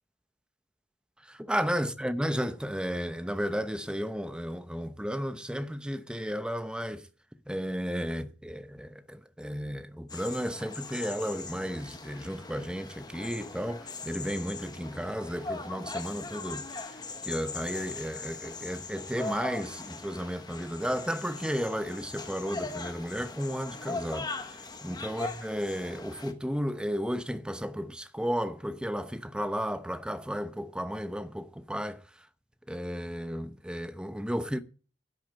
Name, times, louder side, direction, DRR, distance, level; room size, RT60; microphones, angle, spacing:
voice 1, 1.3-7.1 7.5-17.0 17.2-24.6 24.8-32.0 32.7-34.6, equal, 5° right, 0.8 m, -33 dB
sound 1, 10.1-26.3, left 3 dB, 20° left, 1.4 m, -40 dB
10.5 x 8.7 x 7.9 m
head